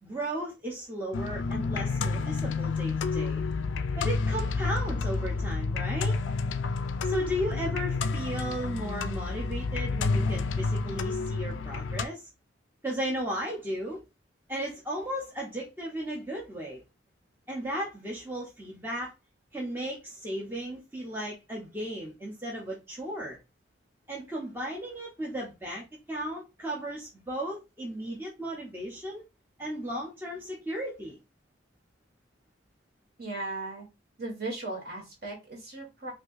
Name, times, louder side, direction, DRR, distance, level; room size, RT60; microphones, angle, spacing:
voice 1, 0.0-3.4 4.0-6.2 7.0-12.3 12.8-14.0 14.5-16.8 17.5-19.1 19.5-23.4 24.1-29.2 29.6-31.2, equal, 10° right, 0.6 m, -35 dB
sound 1, 1.1-12.1, left 4 dB, 70° left, 0.3 m, -30 dB
voice 2, 33.2-33.9 34.2-36.1, right 2 dB, 50° right, 1.5 m, -37 dB
4.1 x 2.6 x 2.4 m
head